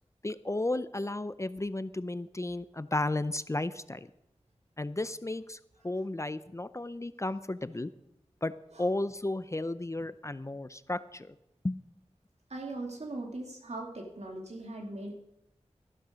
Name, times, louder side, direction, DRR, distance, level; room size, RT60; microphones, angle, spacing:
voice 1, 0.2-4.1 4.8-7.9 8.4-8.5 8.8-11.3 11.6-11.8, left 2 dB, 25° left, 14 dB, 0.5 m, -33 dB
voice 2, 12.5-15.2, right 2 dB, 70° right, 1 dB, 2.5 m, -40 dB
13.5 x 12.0 x 5.1 m, 0.85 s
wide cardioid pair, 55°, 12 cm